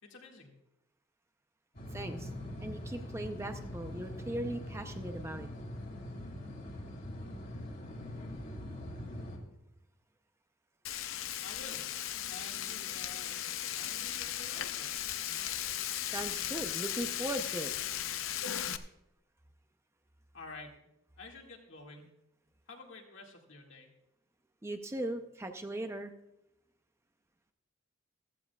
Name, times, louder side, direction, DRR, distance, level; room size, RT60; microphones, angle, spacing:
voice 1, 0.0-0.5 11.4-11.9 12.3-13.5 13.8-14.9 20.3-20.8 21.2-22.1 22.7-23.9, left 3 dB, 65° left, 1 dB, 2.0 m, -50 dB
sound 1, 1.7-9.4, left 1 dB, 50° left, 2.5 m, -42 dB
voice 2, 1.9-2.3 2.6-5.5 16.1-17.7 24.6-26.1, right 1 dB, 15° right, 7 dB, 0.6 m, -38 dB
Frying (food), 10.8-18.8, left 11 dB, 80° left, 0.6 m, -37 dB
15.0 x 14.0 x 2.3 m, 0.86 s
head